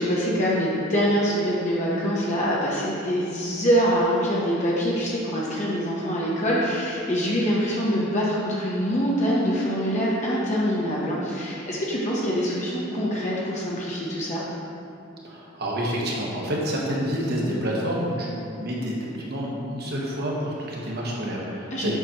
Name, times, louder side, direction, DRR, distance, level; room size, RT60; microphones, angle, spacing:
voice 1, 0.0-14.4 21.7-21.9, equal, 35° left, -6 dB, 0.9 m, -24 dB
voice 2, 15.2-21.9, equal, 50° right, -4 dB, 1.3 m, -28 dB
8.1 x 5.9 x 2.9 m, 2.6 s
head